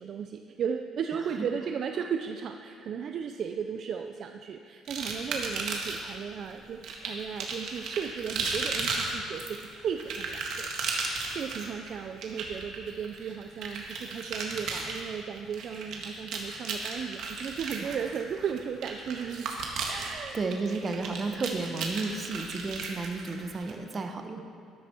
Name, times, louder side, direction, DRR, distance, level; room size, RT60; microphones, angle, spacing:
voice 1, 0.0-19.5 19.8-20.4, right 7 dB, 45° right, 6 dB, 0.4 m, -35 dB
sound 1, 4.9-6.1 6.8-23.7, right 4 dB, 65° right, 1.8 m, -35 dB
voice 2, 20.1-24.4, right 3 dB, 30° right, 6 dB, 0.9 m, -33 dB
13.0 x 12.0 x 4.5 m, 2.4 s
cardioid pair, 150°, 0 cm